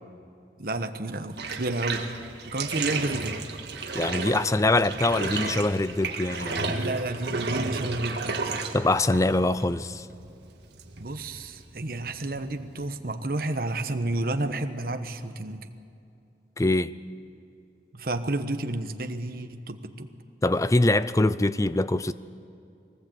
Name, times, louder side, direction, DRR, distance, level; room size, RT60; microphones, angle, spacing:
voice 1, 0.6-2.1 2.4-3.5 6.8-8.4 11.0-15.7 17.9-20.1, right 2 dB, 55° right, 8 dB, 1.1 m, -31 dB
Bathtub (filling or washing), 1.3-13.0, right 4 dB, 75° right, 1.7 m, -33 dB
voice 2, 3.9-6.8 8.7-10.1 16.6-16.9 20.4-22.1, left 2 dB, 20° left, 15 dB, 0.5 m, -23 dB
22.5 x 19.0 x 8.1 m, 2.5 s
head